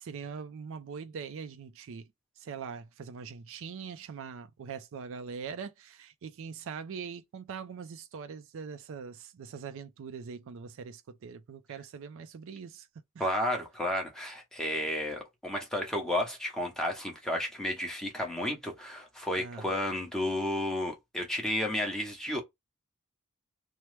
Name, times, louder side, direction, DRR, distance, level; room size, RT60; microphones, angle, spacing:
voice 1, 0.0-2.1 2.4-12.9 13.2-13.4 19.4-19.6, right 6 dB, 65° right, 0.4 m, -42 dB
voice 2, 13.2-22.4, left 1 dB, 5° left, 0.8 m, -32 dB
3.0 x 2.0 x 3.2 m
head